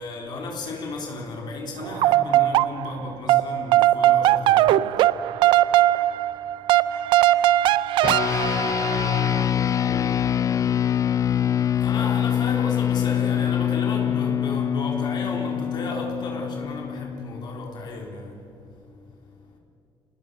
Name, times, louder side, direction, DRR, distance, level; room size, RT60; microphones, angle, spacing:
voice 1, 0.0-9.2 11.2-19.6, left 2 dB, 60° left, 3.9 m, -35 dB
sound 1, 1.8-3.0 3.3-9.4, right 14 dB, 80° right, 0.5 m, -20 dB
sound 2, 8.0-17.7, left 9 dB, 40° left, 0.6 m, -24 dB
voice 2, 8.9-9.0, left 1 dB, 25° left, 3.8 m, -44 dB
26.0 x 19.5 x 6.4 m
cardioid pair, 95°, 8 cm